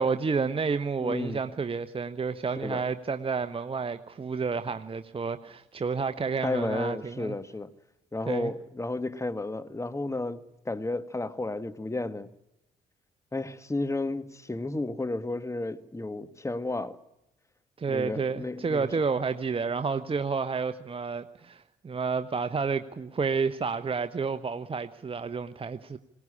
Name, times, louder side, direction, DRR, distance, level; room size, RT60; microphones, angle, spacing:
voice 1, 0.0-7.4 8.3-8.5 17.8-26.0, right 5 dB, 30° right, 1.1 m, -30 dB
voice 2, 1.0-1.4 2.6-2.8 6.4-7.7 8.1-12.3 13.3-17.0 17.9-18.9, left 2 dB, 15° left, 1.7 m, -32 dB
21.0 x 18.5 x 9.9 m
hypercardioid pair, 50°, 18 cm